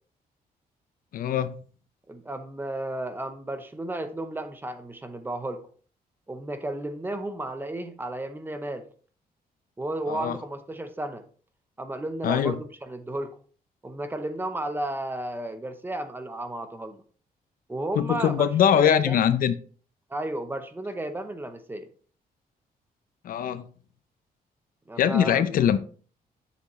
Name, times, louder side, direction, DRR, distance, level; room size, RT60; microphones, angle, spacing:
voice 1, 1.1-1.6 10.1-10.4 12.2-12.6 18.0-19.5 23.2-23.7 25.0-25.8, left 9 dB, 65° left, 0.5 m, -22 dB
voice 2, 2.1-5.7 6.3-8.9 9.8-11.2 11.8-13.4 13.8-17.0 17.7-19.2 20.1-21.9 24.9-25.4, right 1 dB, 15° right, 0.7 m, -33 dB
7.2 x 6.9 x 3.1 m
wide cardioid pair, 165°, 16 cm